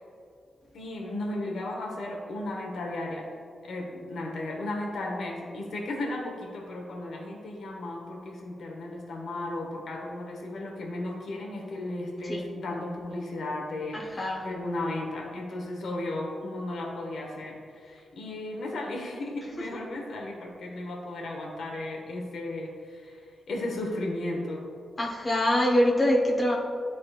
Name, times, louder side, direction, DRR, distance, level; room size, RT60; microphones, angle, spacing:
voice 1, 0.7-3.3 3.6-24.6, left 2 dB, 80° left, 0 dB, 1.1 m, -35 dB
voice 2, 13.9-14.5 25.0-26.5, left 1 dB, 30° left, -2 dB, 1.1 m, -24 dB
11.0 x 4.2 x 2.4 m, 2.3 s
cardioid pair, 85°, 0 cm